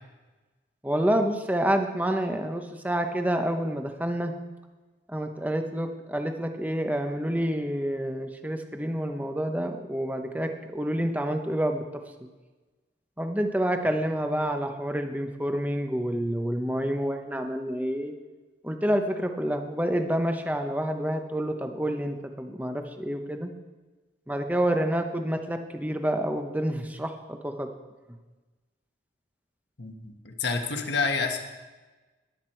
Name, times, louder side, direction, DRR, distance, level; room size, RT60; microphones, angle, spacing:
voice 1, 0.8-4.3 5.1-12.0 13.2-18.1 18.6-23.5 24.3-27.7, equal, 10° right, 5 dB, 0.8 m, -28 dB
voice 2, 29.8-31.4, left 4 dB, 65° left, 4 dB, 1.5 m, -28 dB
20.5 x 8.2 x 4.5 m, 1.2 s
head